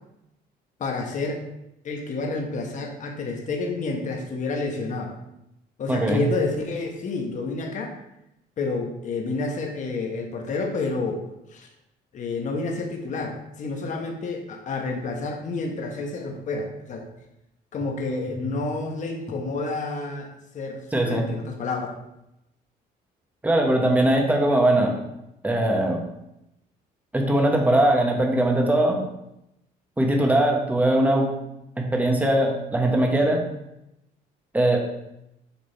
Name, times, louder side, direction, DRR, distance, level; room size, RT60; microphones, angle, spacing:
voice 1, 0.8-1.4 1.8-5.1 5.8-8.0 8.6-11.2 11.5-11.7 12.1-17.1 17.7-21.9, left 3 dB, 45° left, 2 dB, 1.1 m, -29 dB
voice 2, 5.9-6.3 20.9-21.3 23.4-24.9 25.4-26.0 27.1-29.0 30.0-31.3 31.8-33.4 34.5-34.8, right 1 dB, 10° right, 1 dB, 1.3 m, -20 dB
6.8 x 3.7 x 4.5 m, 0.86 s
cardioid pair, 110°, 17 cm